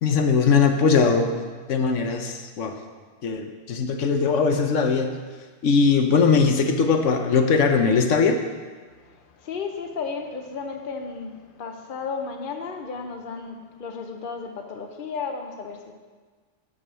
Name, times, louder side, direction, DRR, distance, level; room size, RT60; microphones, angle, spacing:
voice 1, 0.0-1.4 1.7-2.8 3.2-5.1 5.6-8.4, left 5 dB, 85° left, 5 dB, 1.2 m, -20 dB
voice 2, 9.0-15.9, left 5 dB, 50° left, 4 dB, 1.0 m, -34 dB
9.7 x 6.6 x 6.1 m, 1.5 s
omnidirectional pair, 1.2 m